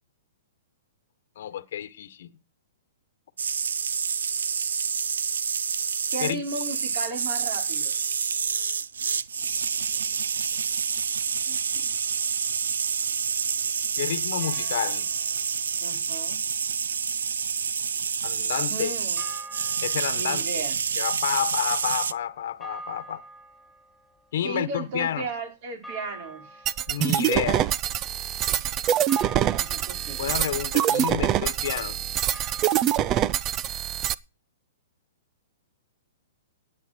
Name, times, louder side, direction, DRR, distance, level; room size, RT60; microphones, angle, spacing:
voice 1, 1.4-2.3 6.2-6.4 14.0-15.1 18.2-18.9 19.8-20.4 21.0-23.2 24.3-25.3 26.9-27.7 30.2-32.0, left 10 dB, 65° left, 1.2 m, -30 dB
sound 1, 3.4-22.1, right 6 dB, 85° right, 0.6 m, -28 dB
voice 2, 6.1-8.0 11.5-11.9 15.8-16.4 18.7-19.2 20.1-20.8 24.4-26.7 29.3-30.2, right 3 dB, 50° right, 5.2 m, -35 dB
sound 2, 14.4-15.5 19.2-33.3, right 2 dB, ahead, 6.7 m, -48 dB
sound 3, 26.7-34.1, right 11 dB, 30° right, 0.6 m, -25 dB
18.0 x 8.6 x 4.6 m
hypercardioid pair, 135°, 0 cm